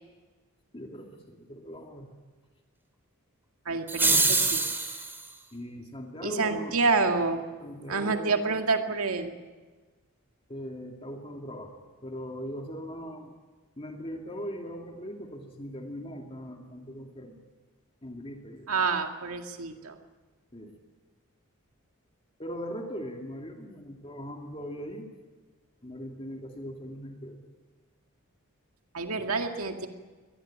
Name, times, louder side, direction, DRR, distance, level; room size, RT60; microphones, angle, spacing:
voice 1, 0.7-2.1 5.5-6.8 7.6-8.6 10.5-11.7 12.0-13.3 13.8-17.4 18.0-18.7 20.5-20.8 22.4-25.1 25.8-27.4, equal, 25° left, 2 dB, 2.4 m, -40 dB
voice 2, 3.7-4.6 6.2-7.4 7.9-9.3 18.7-20.0 28.9-29.9, right 4 dB, 75° right, 5 dB, 2.0 m, -28 dB
sound 1, 3.9-5.2, right 3 dB, 10° right, 2.3 m, -24 dB
23.0 x 19.5 x 8.6 m, 1.3 s
head